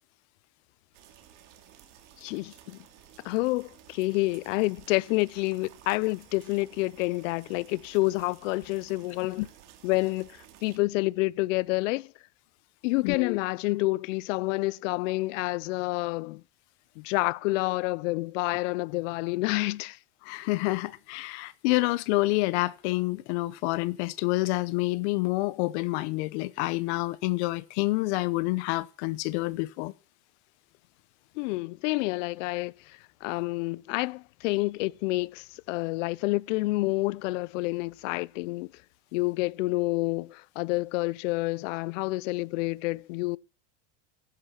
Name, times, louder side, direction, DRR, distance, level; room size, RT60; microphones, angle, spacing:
sound 1, 0.9-10.8, right 12 dB, 70° right, 3.1 m, -54 dB
voice 1, 2.2-2.9 3.2-9.4 9.8-12.1 12.8-16.4 17.0-20.0 31.4-38.7 39.1-43.4, left 22 dB, 80° left, 0.6 m, -28 dB
voice 2, 13.0-13.4 20.2-29.9, left 21 dB, 65° left, 1.0 m, -28 dB
14.0 x 11.0 x 4.4 m
cardioid pair, 165°, 37 cm